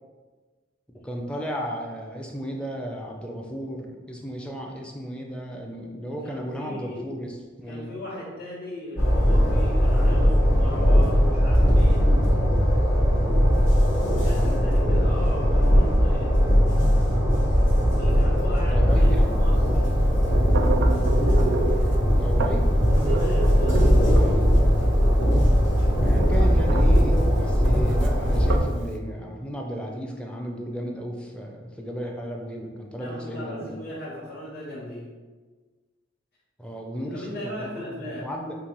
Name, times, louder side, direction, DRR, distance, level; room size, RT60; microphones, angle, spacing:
voice 1, 1.0-7.9 14.1-14.6 18.7-19.3 22.1-22.7 26.0-33.8 36.6-38.5, equal, 5° left, 0 dB, 0.4 m, -34 dB
voice 2, 6.2-7.1 7.7-12.1 13.8-16.5 17.9-19.9 22.8-23.9 33.0-35.1 37.1-38.3, left 1 dB, 60° left, -11 dB, 1.1 m, -37 dB
Train, 9.0-28.6, equal, 80° left, 1.2 m, -19 dB
sound 1, 18.9-28.9, right 3 dB, 60° right, 0.4 m, -32 dB
5.2 x 2.6 x 3.0 m, 1.4 s
head